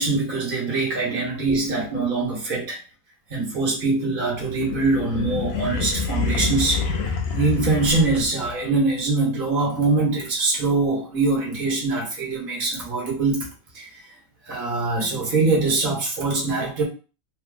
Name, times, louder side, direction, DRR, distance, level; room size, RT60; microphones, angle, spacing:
voice 1, 0.0-2.8 3.3-6.8 7.3-13.5 13.7-14.0 14.5-16.8, right 3 dB, 45° right, 1.4 m, -23 dB
sound 1, 4.3-8.6, left 4 dB, 60° left, 0.9 m, -27 dB
3.4 x 2.2 x 3.8 m
omnidirectional pair, 1.3 m